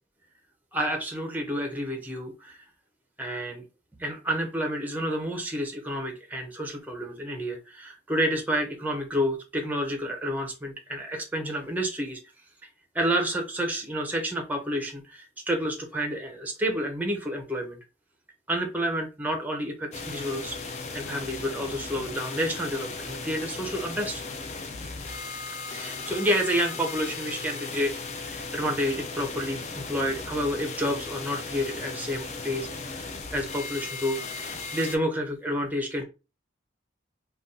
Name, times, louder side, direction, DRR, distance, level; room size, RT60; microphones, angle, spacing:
voice 1, 0.7-2.6 3.2-3.6 4.0-12.2 12.9-17.8 18.5-20.6 20.9-24.2 25.7-36.0, equal, 10° right, 3 dB, 0.6 m, -30 dB
sound 1, 19.9-35.0, left 4 dB, 35° left, 0.4 m, -37 dB
2.5 x 2.3 x 3.7 m, 0.30 s
head